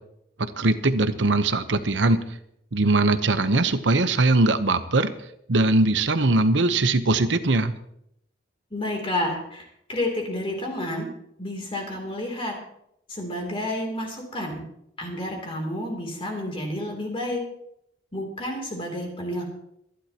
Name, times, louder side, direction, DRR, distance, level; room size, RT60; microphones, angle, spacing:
voice 1, 0.6-2.2 2.7-5.1 5.5-7.7, right 2 dB, 85° right, 11 dB, 1.0 m, -21 dB
voice 2, 8.7-11.1 11.4-12.5 13.1-14.6 15.0-17.4 18.1-19.4, left 1 dB, 30° left, 0 dB, 3.2 m, -30 dB
24.5 x 11.5 x 3.0 m, 0.76 s
head